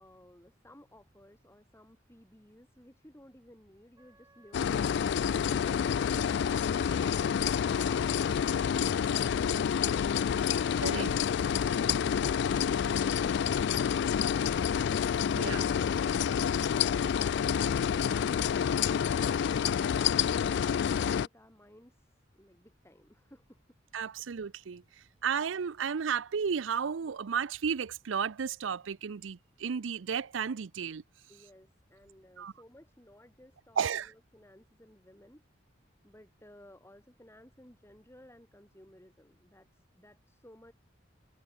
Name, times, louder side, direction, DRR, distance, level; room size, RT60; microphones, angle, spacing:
voice 1, 0.0-9.8 20.2-23.6 31.3-35.4 36.0-40.7, left 1 dB, 15° left, 7.9 m, -57 dB
Wind instrument woodwind instrument, 4.0-9.1, right 3 dB, 20° right, 2.5 m, -57 dB
sound 1, 4.5-21.3, left 8 dB, 60° left, 0.3 m, -28 dB
voice 2, 15.3-15.7 23.9-24.8 25.2-31.0 32.4-32.5 33.8-34.1, right 6 dB, 80° right, 0.5 m, -33 dB
head